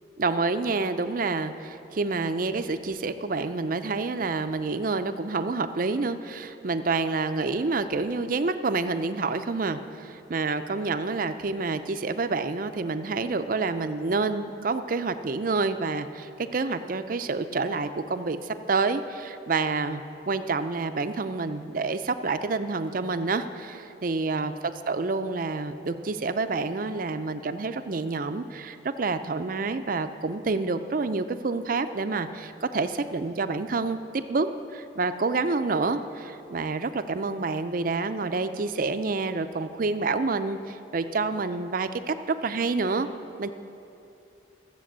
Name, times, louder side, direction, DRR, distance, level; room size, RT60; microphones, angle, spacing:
voice 1, 0.2-43.1 43.4-43.5, right 3 dB, 45° right, 10 dB, 0.5 m, -28 dB
13.5 x 7.6 x 7.3 m, 2.8 s
head